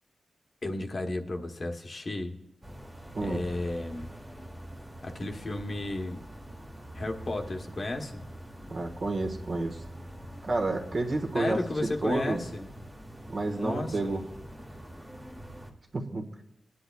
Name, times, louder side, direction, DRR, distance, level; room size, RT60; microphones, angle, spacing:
voice 1, 0.6-2.4 3.2-4.1 5.0-6.2 6.9-8.3 11.3-12.7 13.6-14.2, left 2 dB, 35° left, 4 dB, 1.0 m, -33 dB
sound 1, 2.6-15.7, right 1 dB, 10° right, 1.2 m, -45 dB
voice 2, 8.7-9.8 10.4-12.4 13.3-14.2 15.9-16.3, right 2 dB, 45° right, 3 dB, 1.3 m, -30 dB
19.5 x 10.0 x 2.3 m, 0.81 s
wide cardioid pair, 170°, 0 cm